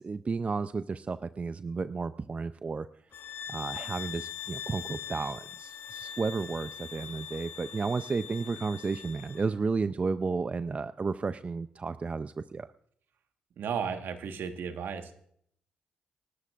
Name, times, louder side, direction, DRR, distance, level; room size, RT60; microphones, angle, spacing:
voice 1, 0.0-2.9 3.5-12.7, right 4 dB, 35° right, 13 dB, 0.5 m, -32 dB
sound 1, 3.1-9.5, left 9 dB, 65° left, 1.2 m, -42 dB
voice 2, 13.6-15.1, right 7 dB, 65° right, 7 dB, 1.4 m, -34 dB
26.5 x 12.5 x 2.5 m, 0.66 s
hypercardioid pair, 50°, 4 cm